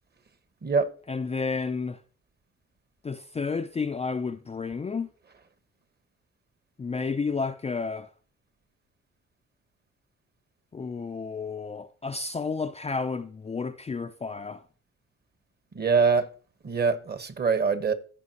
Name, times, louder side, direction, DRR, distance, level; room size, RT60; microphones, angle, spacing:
voice 1, 1.1-2.0 3.0-5.1 6.8-8.1 10.7-14.6, left 4 dB, 20° left, 0.5 m, -31 dB
voice 2, 15.7-16.3 16.6-17.9, right 5 dB, 35° right, 1.2 m, -24 dB
14.5 x 5.4 x 2.9 m
cardioid pair, 90°, 30 cm